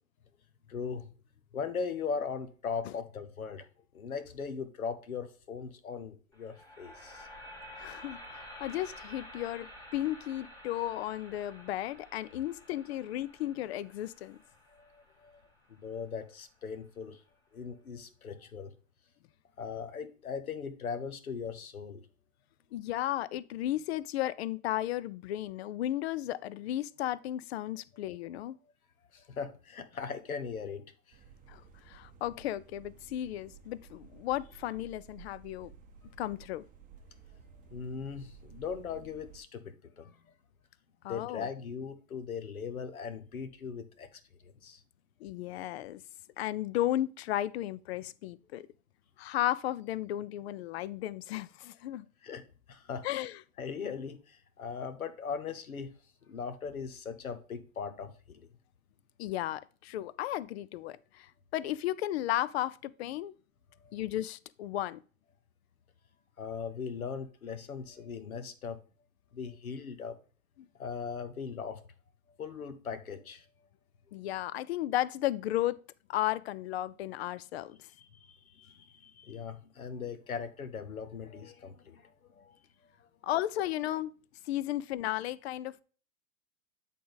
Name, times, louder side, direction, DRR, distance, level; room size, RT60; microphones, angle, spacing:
voice 1, 0.7-1.1 1.5-3.7 3.9-7.3 14.7-15.4 15.7-17.2 17.5-18.7 19.6-22.0 29.1-31.2 37.7-40.2 41.1-44.8 52.2-52.4 52.7-53.1 53.6-55.9 56.2-58.5 63.8-64.0 66.4-68.8 69.3-70.2 70.8-71.8 72.4-73.5 78.0-83.1, left 6 dB, 85° left, 1.0 m, -39 dB
sound 1, 6.3-16.4, left 1 dB, 10° left, 1.8 m, -51 dB
voice 2, 7.8-14.4 22.7-28.6 31.5-35.7 36.2-36.6 41.0-41.5 45.2-46.0 46.4-48.7 49.2-52.1 53.0-53.4 59.2-63.3 63.9-65.0 74.1-75.8 76.1-77.9 83.2-84.1 84.4-85.8, left 14 dB, 50° left, 0.4 m, -34 dB
sound 2, 31.1-39.4, right 6 dB, 20° right, 0.7 m, -55 dB
8.4 x 3.6 x 3.8 m
hypercardioid pair, 110°, 41 cm